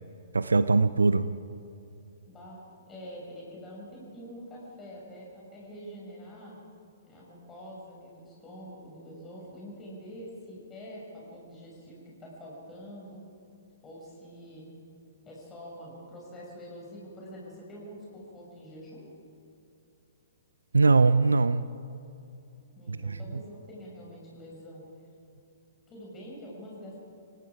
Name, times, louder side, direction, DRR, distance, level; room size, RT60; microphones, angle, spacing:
voice 1, 0.3-1.3 20.7-21.7 22.9-23.4, right 3 dB, 75° right, 14 dB, 0.5 m, -22 dB
voice 2, 2.3-2.6 2.9-6.6 7.0-13.2 13.8-14.7 15.2-19.1 22.7-24.9 25.9-27.0, equal, 15° left, -4 dB, 6.6 m, -45 dB
29.0 x 17.5 x 5.0 m, 2.7 s
figure-of-eight pair, 115°, 0 cm